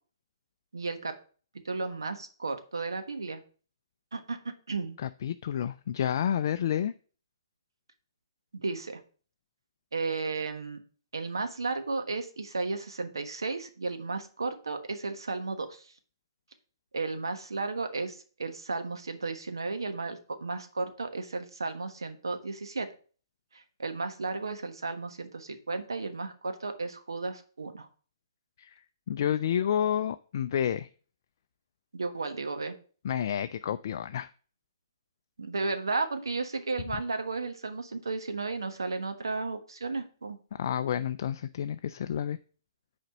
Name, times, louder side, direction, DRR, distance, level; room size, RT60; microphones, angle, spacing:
voice 1, 0.7-1.2 1.6-3.4 4.1-5.0 8.5-9.0 9.9-10.8 11.1-15.9 16.9-22.9 23.5-27.9 31.9-32.8 35.4-40.4, right 3 dB, 80° right, 8 dB, 1.2 m, -34 dB
voice 2, 5.0-6.9 28.6-28.8 29.1-30.9 33.0-34.3 40.5-42.4, left 9 dB, 55° left, 11 dB, 0.3 m, -30 dB
6.5 x 4.3 x 6.4 m, 0.40 s
figure-of-eight pair, 130°, 2 cm